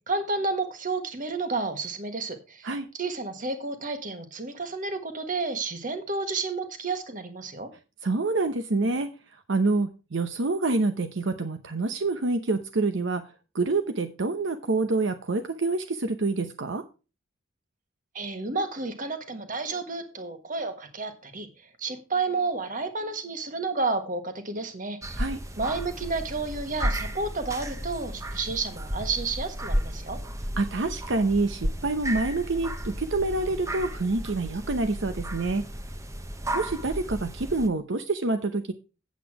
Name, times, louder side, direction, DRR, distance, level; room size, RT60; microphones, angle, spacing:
voice 1, 0.1-2.7 2.9-7.7 18.1-21.5 21.8-25.2 25.6-30.2, right 3 dB, 40° right, 8 dB, 1.4 m, -31 dB
voice 2, 8.0-13.2 13.5-16.8 25.2-25.4 30.6-35.6 36.5-38.7, right 3 dB, 70° right, 8 dB, 0.8 m, -27 dB
sound 1, 25.0-37.7, equal, 15° right, 0.9 m, -33 dB
8.4 x 8.1 x 4.7 m, 0.32 s
head